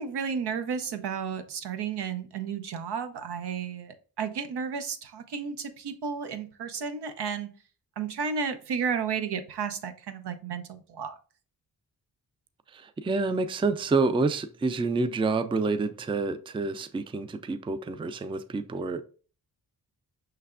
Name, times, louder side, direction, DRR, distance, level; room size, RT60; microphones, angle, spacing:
voice 1, 0.0-7.5 8.0-11.1, right 6 dB, 80° right, 0.7 m, -32 dB
voice 2, 12.7-19.0, right 3 dB, 15° right, 0.3 m, -28 dB
5.7 x 3.3 x 2.4 m
cardioid pair, 60°, 40 cm